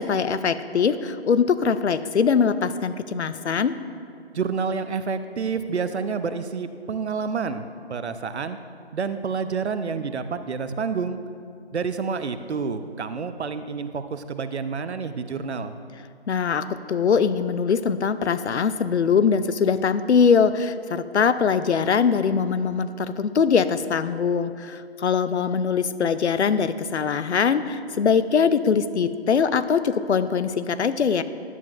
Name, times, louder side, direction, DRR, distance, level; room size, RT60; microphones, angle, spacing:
voice 1, 0.0-3.8 16.3-31.2, left 6 dB, 90° left, 13 dB, 0.5 m, -22 dB
voice 2, 4.3-7.6 7.9-8.6 8.9-11.2 11.7-15.7, right 5 dB, 80° right, 10 dB, 0.6 m, -28 dB
11.0 x 8.3 x 2.5 m, 2.3 s
figure-of-eight pair, 155°, 33 cm